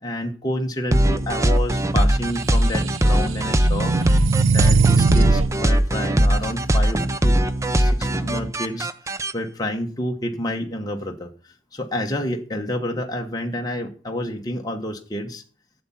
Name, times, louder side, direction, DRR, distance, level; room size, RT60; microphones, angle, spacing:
voice 1, 0.0-3.9 4.5-7.4 7.8-8.9 9.3-11.3 11.7-15.4, left 1 dB, 20° left, 2 dB, 1.0 m, -29 dB
sound 1, 0.9-9.3, right 1 dB, 15° right, 0.5 m, -20 dB
sound 2, 2.6-5.5, right 4 dB, 75° right, 0.6 m, -20 dB
12.0 x 7.2 x 5.7 m, 0.39 s
head